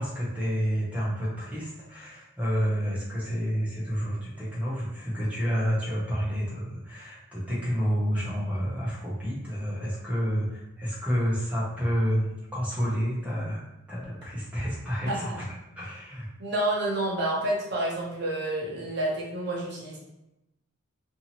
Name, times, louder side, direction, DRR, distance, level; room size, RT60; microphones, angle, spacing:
voice 1, 0.0-15.5 15.8-16.3, equal, 5° right, -8 dB, 0.8 m, -29 dB
voice 2, 15.1-15.4 16.4-20.0, right 1 dB, 50° right, -4 dB, 0.7 m, -29 dB
2.7 x 2.7 x 2.8 m, 0.91 s
head